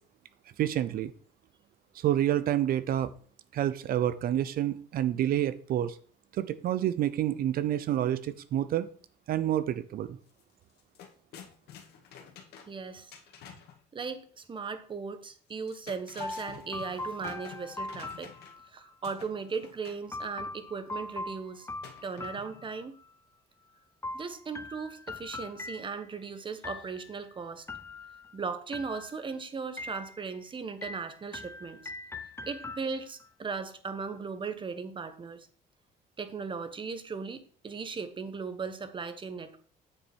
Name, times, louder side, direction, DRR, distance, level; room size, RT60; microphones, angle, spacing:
voice 1, 0.6-1.1 1.9-3.1 3.5-6.0 6.3-8.9 9.3-10.2, right 11 dB, 60° right, 13 dB, 0.7 m, -28 dB
sound 1, 10.3-10.4 10.7-13.8 15.5-18.7 19.0-20.1 21.8-22.7, left 7 dB, 75° left, 1.9 m, -50 dB
voice 2, 12.7-13.2 13.9-18.3 18.7-21.7 22.0-23.0 24.1-27.7 28.3-31.8 32.5-35.5 36.2-39.6, right 5 dB, 30° right, 10 dB, 1.3 m, -37 dB
sound 2, 16.2-18.9 20.1-23.1 24.0-26.2 26.6-27.2 27.7-28.4 28.7-29.4 29.8-30.4 30.8-33.3, left 2 dB, 15° left, 0.9 m, -41 dB
8.9 x 7.1 x 4.5 m, 0.44 s
cardioid pair, 110°, 17 cm